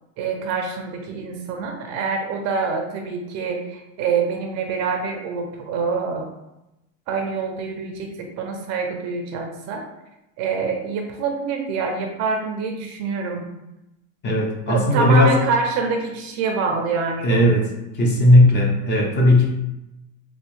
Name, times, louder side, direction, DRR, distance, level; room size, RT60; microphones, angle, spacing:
voice 1, 0.2-6.3 7.1-9.8 10.4-13.4 14.7-17.5, right 5 dB, 40° right, 3 dB, 0.5 m, -26 dB
voice 2, 14.2-15.4 17.2-17.7 17.9-19.5, left 1 dB, 25° left, -1 dB, 0.6 m, -16 dB
3.3 x 2.7 x 3.0 m, 0.93 s
supercardioid pair, 135°, 41 cm